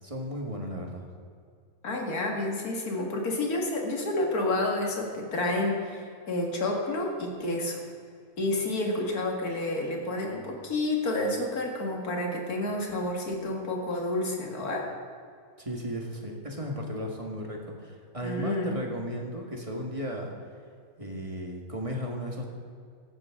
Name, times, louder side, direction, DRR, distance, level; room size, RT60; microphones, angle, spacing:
voice 1, 0.0-1.1 15.6-20.3 21.0-22.5, equal, 20° right, 0 dB, 1.8 m, -35 dB
voice 2, 1.8-7.8 8.4-14.9 18.2-18.8, left 2 dB, 75° left, 0 dB, 2.4 m, -29 dB
16.0 x 13.0 x 3.8 m, 2.2 s
omnidirectional pair, 1.6 m